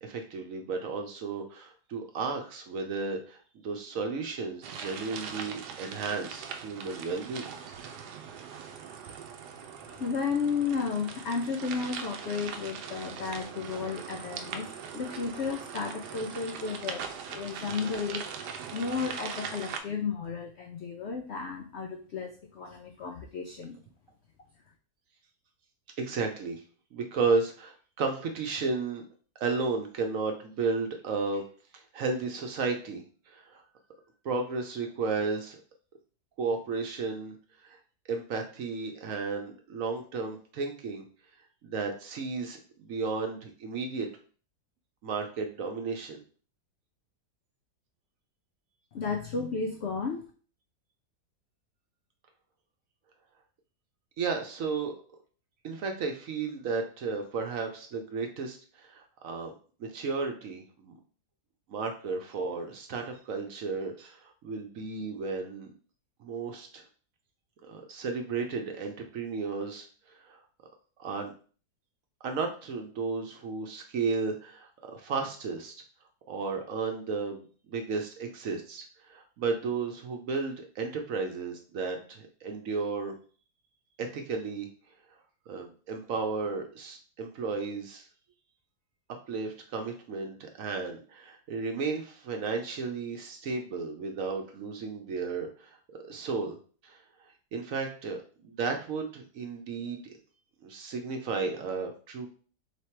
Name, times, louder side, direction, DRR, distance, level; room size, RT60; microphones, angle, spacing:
voice 1, 0.0-7.9 26.0-26.6 26.9-29.0 29.4-31.4 31.7-33.6 34.2-35.6 36.4-37.4 37.6-37.8 38.1-41.1 41.6-44.1 45.0-46.2 54.2-55.0 55.6-59.5 59.8-60.9 61.7-65.7 66.2-66.8 67.7-70.4 71.0-71.3 72.2-75.7 76.3-83.2 84.0-84.7 85.5-88.0 89.3-95.8 96.0-96.6 96.8-97.0 97.5-98.2 98.4-100.1 100.6-102.3, right 4 dB, 65° right, 4 dB, 1.0 m, -33 dB
sound 1, 4.6-19.8, right 6 dB, 85° right, 1.2 m, -41 dB
voice 2, 9.9-18.2 18.7-23.8 48.9-50.2, left 5 dB, 75° left, 4 dB, 0.6 m, -33 dB
3.4 x 3.1 x 4.4 m, 0.40 s
omnidirectional pair, 1.8 m